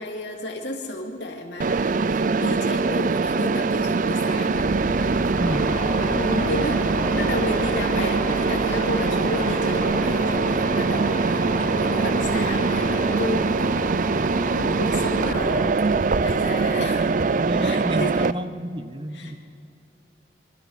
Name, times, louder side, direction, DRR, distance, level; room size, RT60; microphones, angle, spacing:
voice 1, 0.0-5.2 6.1-6.8 7.1-13.8 14.5-17.2 17.6-18.2 19.1-19.4, left 1 dB, 80° left, 0 dB, 3.3 m, -32 dB
Mechanisms, 1.6-18.3, right 4 dB, 45° right, 0.4 m, -23 dB
sound 1, 4.5-15.7, left 1 dB, 15° left, 0.7 m, -33 dB
Crowd, 5.3-13.4, left 2 dB, 40° left, 1.5 m, -36 dB
voice 2, 5.4-5.7 11.6-11.8 17.4-19.4, right 1 dB, 30° right, 9 dB, 0.9 m, -30 dB
25.5 x 25.5 x 4.2 m, 2.4 s
head